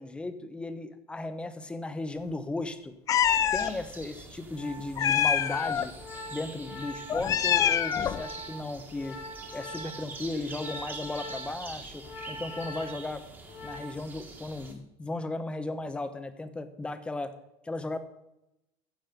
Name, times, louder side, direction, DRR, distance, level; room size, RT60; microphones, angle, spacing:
voice 1, 0.0-2.9 3.5-5.9 6.3-9.2 9.5-13.2 13.6-17.3 17.6-18.0, left 2 dB, 10° left, 10 dB, 0.9 m, -36 dB
Meow, 3.1-3.7 5.0-5.9 7.1-8.2, left 9 dB, 25° left, 0.5 m, -25 dB
sound 1, 3.5-14.7, right 3 dB, 15° right, 1.8 m, -45 dB
Organ, 4.2-14.2 14.5-14.8, left 1 dB, 75° left, 4.7 m, -44 dB
15.0 x 7.5 x 5.1 m, 0.87 s
cardioid pair, 165°, 12 cm